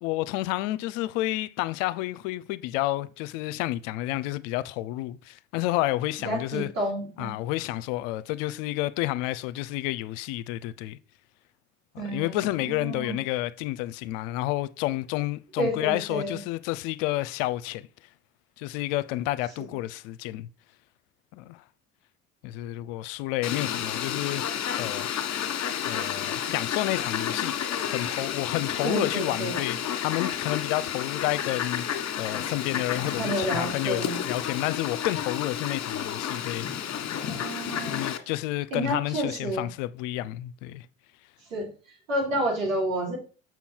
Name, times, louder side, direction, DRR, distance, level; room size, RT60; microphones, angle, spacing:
voice 1, 0.0-6.7 7.2-11.0 11.9-17.9 18.6-20.5 21.3-21.6 22.4-24.4 24.8-25.1 25.8-27.6 27.8-37.5 37.9-40.9, left 16 dB, 70° left, 0.6 m, -30 dB
voice 2, 6.2-7.3 12.0-13.2 15.6-16.4 19.6-19.7 28.8-29.6 33.1-34.2 37.2-38.0 38.7-39.7 41.5-41.7 42.1-43.2, right 1 dB, 90° right, 3.2 m, -30 dB
Fowl, 23.4-38.2, left 9 dB, 45° left, 1.4 m, -31 dB
7.0 x 5.9 x 4.5 m
hypercardioid pair, 60°, 39 cm